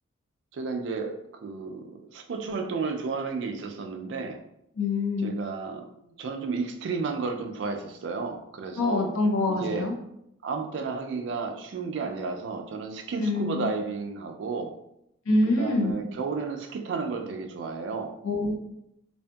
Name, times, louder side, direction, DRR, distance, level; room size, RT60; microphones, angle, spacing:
voice 1, 0.5-4.4 5.2-9.1 9.5-9.9 10.4-14.7 15.5-18.1, right 4 dB, 60° right, 4 dB, 0.3 m, -32 dB
voice 2, 4.7-5.4 8.8-9.9 13.2-13.7 15.3-15.9 18.2-18.5, left 2 dB, 90° left, 1 dB, 0.5 m, -25 dB
2.6 x 2.6 x 2.2 m, 0.80 s
head